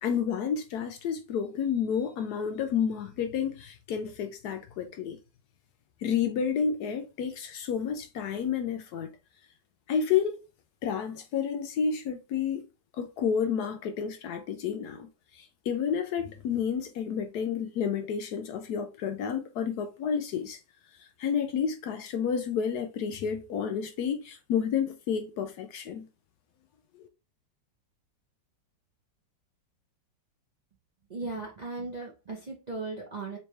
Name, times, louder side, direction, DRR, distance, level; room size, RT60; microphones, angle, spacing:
voice 1, 0.0-5.2 6.0-9.1 9.9-10.4 10.8-12.6 13.0-15.1 15.3-20.6 21.0-26.1 27.0-27.1, left 7 dB, 70° left, 1.0 m, -30 dB
voice 2, 31.1-33.4, right 3 dB, 50° right, 0.5 m, -37 dB
3.4 x 3.1 x 3.2 m
omnidirectional pair, 2.0 m